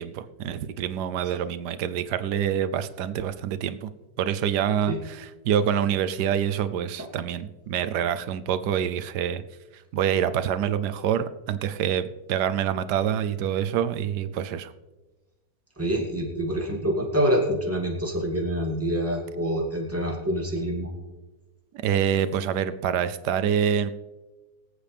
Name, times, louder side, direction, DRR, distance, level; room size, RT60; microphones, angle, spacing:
voice 1, 0.0-3.9 4.2-9.4 9.9-14.7 21.8-23.9, right 9 dB, 75° right, 12 dB, 1.2 m, -26 dB
voice 2, 15.8-20.9, equal, 10° right, -2 dB, 2.5 m, -26 dB
23.5 x 8.3 x 3.4 m, 1.2 s
omnidirectional pair, 1.9 m